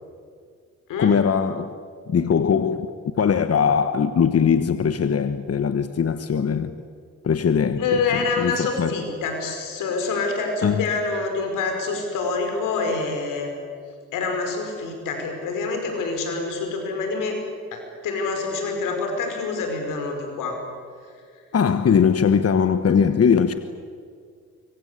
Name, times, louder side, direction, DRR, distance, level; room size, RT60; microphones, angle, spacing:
voice 1, 1.0-1.7 2.1-2.9 3.1-6.7 7.2-8.0 8.4-9.0 10.6-10.9 21.5-23.6, left 6 dB, 50° left, 1.3 m, -20 dB
voice 2, 7.8-13.5 14.1-17.4 17.7-20.6 22.8-23.0, left 4 dB, 90° left, 5.5 m, -26 dB
25.0 x 24.5 x 8.4 m
supercardioid pair, 55°, 31 cm